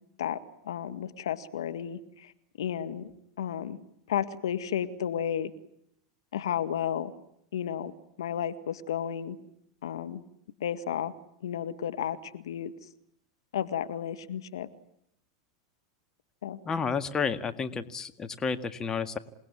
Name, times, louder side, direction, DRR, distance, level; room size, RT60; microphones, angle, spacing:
voice 1, 0.2-2.3 2.6-3.1 3.4-3.8 4.1-5.5 6.3-7.1 7.5-7.9 8.2-9.4 9.8-10.2 10.6-11.1 11.4-12.7 13.5-14.7 16.4-16.6, left 9 dB, 80° left, 11 dB, 1.8 m, -32 dB
voice 2, 16.7-19.2, left 5 dB, 25° left, 10 dB, 2.0 m, -31 dB
28.0 x 19.0 x 9.9 m, 0.75 s
hypercardioid pair, 100°, 2 cm